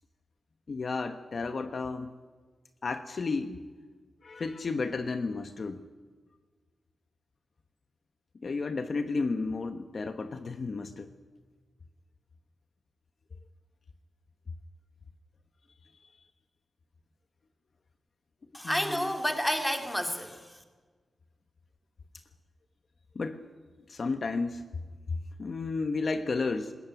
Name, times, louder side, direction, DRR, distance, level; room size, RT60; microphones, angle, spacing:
voice 1, 0.7-2.1 2.8-3.6 4.2-5.8 8.4-11.1 16.0-16.1 18.6-19.1 23.1-23.4 23.9-24.6 25.4-26.7, left 4 dB, 45° left, 1.1 m, -32 dB
voice 2, 18.5-20.6, equal, 5° left, 2.6 m, -30 dB
21.0 x 20.0 x 9.3 m
wide cardioid pair, 140°, 0 cm